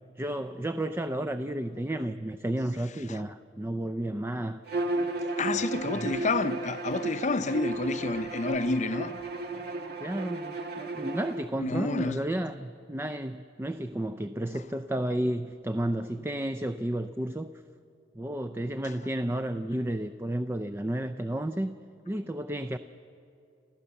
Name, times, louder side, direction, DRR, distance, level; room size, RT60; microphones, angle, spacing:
voice 1, 0.2-4.6 5.5-6.1 10.0-17.5 18.2-21.7 22.1-22.8, right 1 dB, 15° right, 0.4 m, -32 dB
Bowed string instrument, 4.7-11.4, right 2 dB, 60° right, 1.5 m, -34 dB
voice 2, 5.4-9.2 11.6-12.2, left 3 dB, 40° left, 0.6 m, -29 dB
27.5 x 15.0 x 7.0 m
head